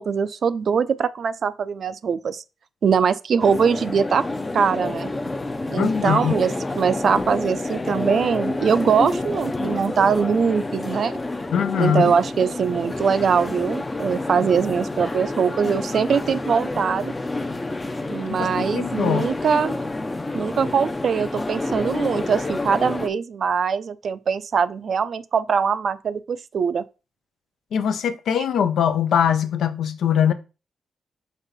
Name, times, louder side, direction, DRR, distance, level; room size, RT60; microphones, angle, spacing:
voice 1, 0.0-2.4 2.8-4.2 4.5-5.1 5.7-11.1 11.8-17.1 18.1-19.8 20.3-26.8, right 6 dB, 55° right, 0.4 m, -22 dB
sound 1, 3.4-23.1, left 2 dB, 20° left, 0.5 m, -29 dB
voice 2, 5.8-6.3 11.5-12.1 18.3-19.3 27.7-30.3, left 8 dB, 85° left, 0.6 m, -22 dB
5.4 x 4.5 x 4.0 m
cardioid pair, 125°, 0 cm